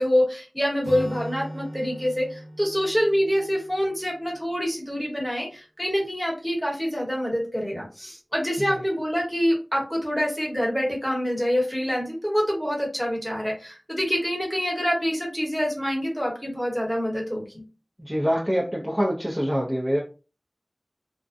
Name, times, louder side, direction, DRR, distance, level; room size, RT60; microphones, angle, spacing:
voice 1, 0.0-17.6, equal, ahead, -1 dB, 1.0 m, -26 dB
Acoustic guitar, 0.8-4.6, equal, 55° right, 1.0 m, -39 dB
voice 2, 18.0-20.0, equal, 20° right, -3 dB, 0.5 m, -25 dB
2.4 x 2.1 x 2.5 m, 0.33 s
wide cardioid pair, 60°, 0 cm